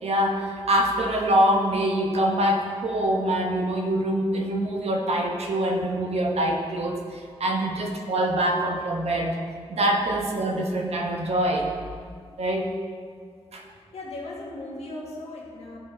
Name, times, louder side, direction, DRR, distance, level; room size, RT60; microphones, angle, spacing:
voice 1, 0.0-9.4 9.7-11.7 12.4-12.7 13.5-13.6, right 1 dB, 75° right, 2 dB, 1.1 m, -24 dB
voice 2, 13.9-15.8, left 2 dB, 80° left, -3 dB, 1.7 m, -37 dB
12.5 x 5.0 x 4.3 m, 2.1 s
wide cardioid pair, 95°, 11 cm